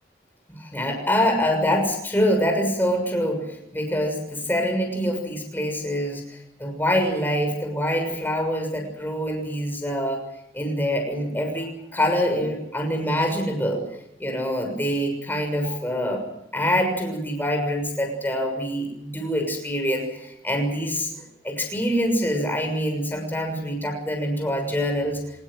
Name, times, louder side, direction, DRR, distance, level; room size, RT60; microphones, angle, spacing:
voice 1, 0.6-10.2 10.5-13.8 14.2-25.2, equal, 10° left, 3 dB, 6.5 m, -25 dB
25.5 x 20.0 x 7.8 m, 0.80 s
head